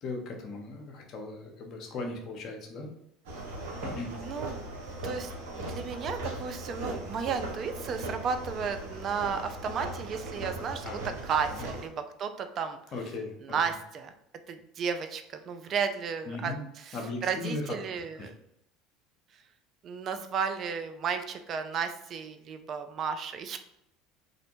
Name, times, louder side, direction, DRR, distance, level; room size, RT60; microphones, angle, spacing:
voice 1, 0.0-2.9 3.8-4.1 10.8-11.0 12.9-13.6 16.3-16.6 16.9-17.6 18.2-18.3, left 3 dB, 50° left, 1 dB, 0.7 m, -37 dB
sound 1, 3.2-11.8, right 2 dB, 80° right, 0.7 m, -39 dB
voice 2, 4.1-4.6 5.0-12.8 13.4-14.1 14.5-18.3 19.3-19.4 19.8-23.6, right 6 dB, 45° right, 8 dB, 0.3 m, -33 dB
2.5 x 2.1 x 2.9 m, 0.78 s
hypercardioid pair, 85°, 0 cm